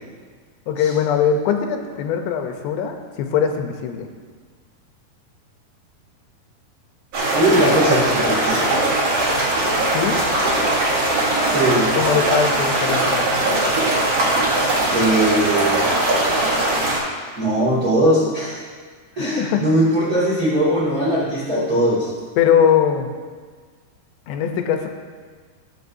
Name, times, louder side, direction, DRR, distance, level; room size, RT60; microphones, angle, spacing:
voice 1, 0.7-4.1 9.9-10.3 11.9-13.3 19.2-19.6 22.4-23.1 24.3-24.9, left 8 dB, 90° left, 5 dB, 3.0 m, -21 dB
sound 1, 7.1-17.0, right 1 dB, 45° right, 2.5 m, -20 dB
voice 2, 7.3-8.6 11.5-11.9 14.9-15.8 17.3-18.6 19.2-22.1, right 1 dB, 30° right, -8 dB, 2.0 m, -19 dB
18.5 x 6.8 x 2.7 m, 1.5 s
omnidirectional pair, 4.8 m